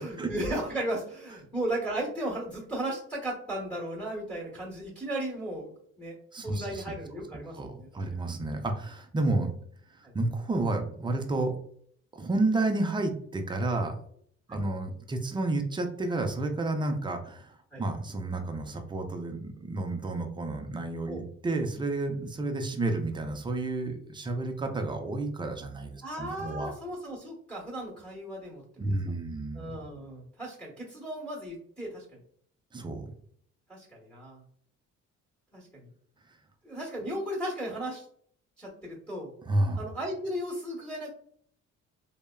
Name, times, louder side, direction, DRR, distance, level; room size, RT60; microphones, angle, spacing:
voice 1, 0.0-5.7 6.0-6.1 6.4-7.9 10.0-10.1 14.5-14.6 17.7-17.8 21.1-21.2 26.0-28.6 29.5-32.2 33.7-34.4 35.5-35.9 36.6-38.1 38.6-39.3 39.8-41.1, right 1 dB, 5° left, -2 dB, 1.1 m, -35 dB
voice 2, 6.3-6.8 7.5-9.5 9.9-11.5 12.1-14.0 14.5-26.7 28.8-29.6 32.7-33.1 39.5-39.8, right 2 dB, 15° right, 5 dB, 0.4 m, -31 dB
3.4 x 2.1 x 2.2 m, 0.63 s
cardioid pair, 90°, 30 cm